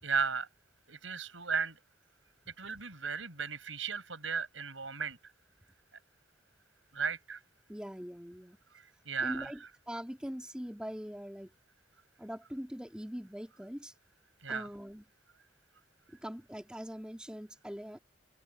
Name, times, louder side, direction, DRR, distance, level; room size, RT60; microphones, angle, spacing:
voice 1, 0.0-0.5 0.9-1.8 2.6-5.2 6.9-7.4 8.7-9.5 14.4-14.7, right 5 dB, 75° right, 7.5 m, -35 dB
voice 2, 7.7-8.6 9.2-9.6 9.9-11.5 12.2-13.9 14.5-15.0 16.2-18.0, equal, 5° right, 3.0 m, -42 dB
open air
head